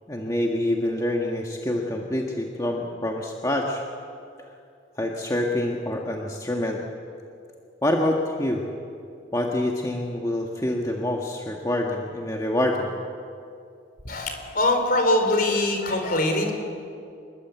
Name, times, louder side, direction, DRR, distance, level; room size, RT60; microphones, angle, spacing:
voice 1, 0.1-3.8 5.0-6.8 7.8-8.6 9.3-12.9, left 1 dB, 20° left, 0 dB, 1.6 m, -26 dB
voice 2, 14.0-16.5, left 1 dB, 50° left, 5 dB, 4.1 m, -23 dB
27.0 x 21.5 x 8.3 m, 2.4 s
head